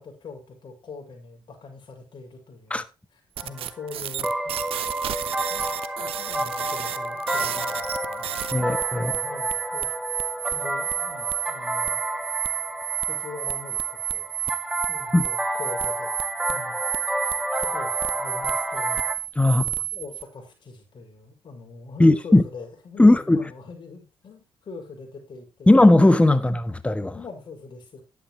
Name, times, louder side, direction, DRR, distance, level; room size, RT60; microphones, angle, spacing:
voice 1, 0.0-2.8 3.4-4.5 5.5-8.3 8.6-9.9 10.5-12.0 13.1-14.3 14.9-16.2 16.5-16.8 17.6-19.0 19.4-23.1 23.3-25.7 27.1-28.0, left 4 dB, 50° left, 6.1 m, -42 dB
sound 1, 3.4-19.1, right 1 dB, 10° right, 2.0 m, -31 dB
sound 2, 3.4-20.2, right 12 dB, 75° right, 0.9 m, -31 dB
voice 2, 8.5-9.1 15.1-15.2 19.4-19.7 22.0-22.4 23.0-23.4 25.7-27.1, left 2 dB, 10° left, 1.3 m, -17 dB
11.5 x 9.9 x 3.1 m
cardioid pair, 75°, 10 cm